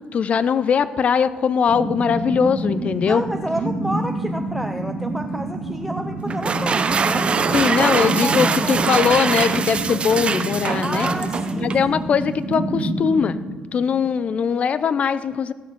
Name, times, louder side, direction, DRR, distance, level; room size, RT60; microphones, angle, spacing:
voice 1, 0.1-3.2 7.5-11.1 11.6-13.4 13.7-15.5, left 7 dB, 50° left, 15 dB, 0.7 m, -20 dB
sound 1, 1.7-14.3, right 2 dB, 65° right, 2.3 m, -28 dB
voice 2, 3.1-7.3 7.7-7.9 8.2-8.9 10.8-11.7, right 1 dB, ahead, 6 dB, 0.6 m, -30 dB
sound 2, 6.3-11.9, right 5 dB, 40° right, 0.7 m, -23 dB
17.5 x 6.9 x 6.0 m, 1.4 s
supercardioid pair, 70°, 3 cm